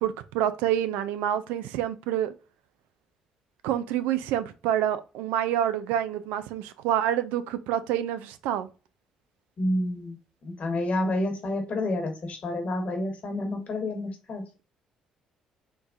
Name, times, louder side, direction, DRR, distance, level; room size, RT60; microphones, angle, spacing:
voice 1, 0.0-2.3 3.6-8.7, right 11 dB, 75° right, 0.3 m, -27 dB
voice 2, 9.6-10.2 10.4-14.4, left 1 dB, 50° left, 1.2 m, -29 dB
3.6 x 2.8 x 2.4 m
hypercardioid pair, 55°, 3 cm